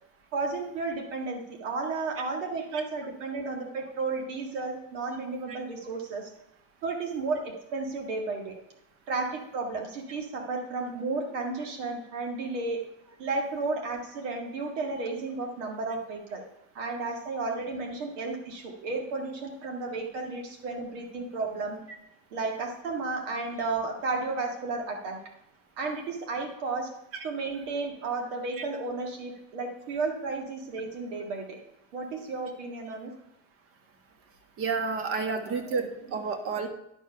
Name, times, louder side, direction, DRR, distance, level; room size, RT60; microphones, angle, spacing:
voice 1, 0.3-6.3 6.8-8.6 9.1-12.8 13.2-16.4 16.7-21.8 22.3-25.2 25.8-26.9 27.2-31.6 31.9-33.1 35.4-36.2, right 3 dB, 80° right, 2 dB, 1.8 m, -33 dB
voice 2, 34.6-36.7, right 5 dB, 35° right, 7 dB, 1.4 m, -30 dB
10.5 x 4.6 x 5.7 m, 0.81 s
supercardioid pair, 140°, 37 cm